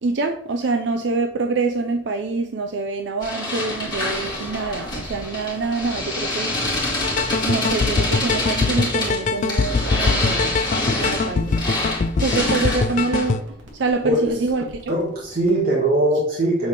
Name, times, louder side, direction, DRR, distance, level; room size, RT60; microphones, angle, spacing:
voice 1, 0.0-6.9 7.4-10.6 11.0-11.6 12.2-15.0, right 3 dB, 65° right, 5 dB, 0.5 m, -25 dB
sound 1, 3.2-13.4, left 1 dB, 25° left, 2.0 m, -26 dB
sound 2, 3.6-15.6, equal, 85° right, 1.6 m, -43 dB
sound 3, 7.0-13.4, left 4 dB, 40° left, 0.4 m, -23 dB
voice 2, 14.9-16.7, right 1 dB, 50° right, -5 dB, 1.5 m, -21 dB
6.9 x 4.1 x 3.3 m, 0.66 s
head